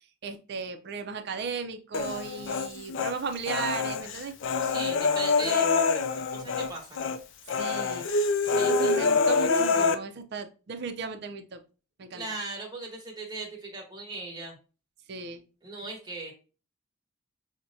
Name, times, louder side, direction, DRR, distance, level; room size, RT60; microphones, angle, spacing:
voice 1, 0.2-4.3 7.5-8.1 8.5-11.6 12.0-12.2 15.1-15.4, right 4 dB, 55° right, 7 dB, 0.5 m, -36 dB
Human voice, 1.9-3.1 3.5-6.7 7.0-7.2 7.5-10.0, left 4 dB, 65° left, 0.4 m, -26 dB
voice 2, 4.6-7.0 8.4-9.0 12.1-14.6 15.6-16.3, right 3 dB, 20° right, -1 dB, 1.1 m, -39 dB
5.9 x 2.1 x 2.6 m, 0.34 s
head